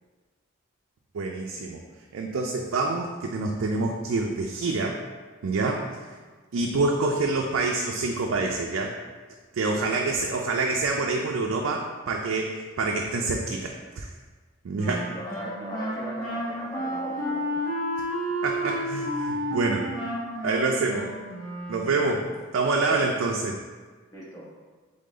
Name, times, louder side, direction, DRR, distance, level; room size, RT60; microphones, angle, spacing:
voice 1, 1.1-1.8 2.1-5.0 5.4-5.8 6.5-8.9 9.5-14.1 14.6-15.0 18.4-19.9 20.4-21.1 21.7-22.2 22.5-23.6, right 3 dB, 75° right, 1 dB, 0.4 m, -26 dB
voice 2, 9.8-10.2 14.8-17.6 20.8-21.1 22.0-22.3 22.9-23.1 24.1-24.5, equal, 15° left, -6 dB, 1.0 m, -39 dB
Wind instrument woodwind instrument, 14.8-22.1, equal, 40° left, 1.1 m, -31 dB
3.8 x 3.6 x 3.8 m, 1.4 s
head